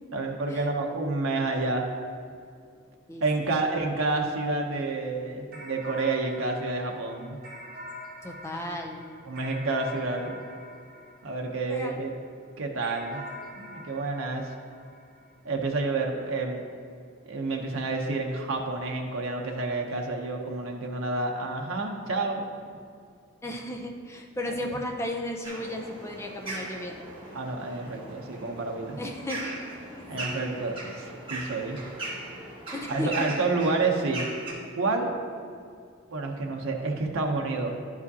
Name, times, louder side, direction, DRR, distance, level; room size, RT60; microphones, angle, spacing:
voice 1, 0.1-1.9 3.2-7.4 9.2-10.3 11.2-12.1 12.6-13.2 13.6-14.5 15.4-16.6 17.2-22.4 27.3-29.0 30.1-31.8 32.9-34.2 34.7-35.1 36.1-37.8, right 3 dB, 80° right, 1 dB, 0.7 m, -29 dB
voice 2, 3.1-3.6 8.2-9.0 11.7-12.0 23.4-27.1 29.0-29.5 29.9-30.4 32.7-33.3, left 1 dB, 15° left, 2 dB, 0.5 m, -35 dB
sound 1, 5.5-12.1 12.8-15.6, left 1 dB, 45° right, 1.7 m, -45 dB
sound 2, 25.4-34.5, right 2 dB, 25° right, 1.5 m, -39 dB
11.0 x 4.8 x 2.7 m, 2.3 s
head